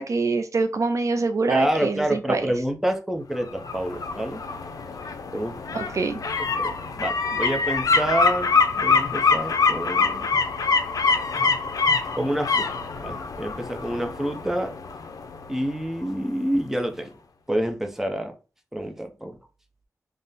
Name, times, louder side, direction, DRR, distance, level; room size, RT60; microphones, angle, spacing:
voice 1, 0.0-2.5 5.7-6.2, right 3 dB, 60° right, 8 dB, 0.4 m, -25 dB
voice 2, 1.5-4.4 5.3-5.6 6.4-8.5 8.7-10.3 12.2-14.7 15.5-17.2 17.5-18.3 18.7-19.4, right 1 dB, 5° right, 4 dB, 0.6 m, -28 dB
sound 1, 3.4-16.2 16.5-16.6, left 4 dB, 75° left, 0.5 m, -25 dB
3.6 x 2.1 x 4.0 m, 0.32 s
wide cardioid pair, 95°, 6 cm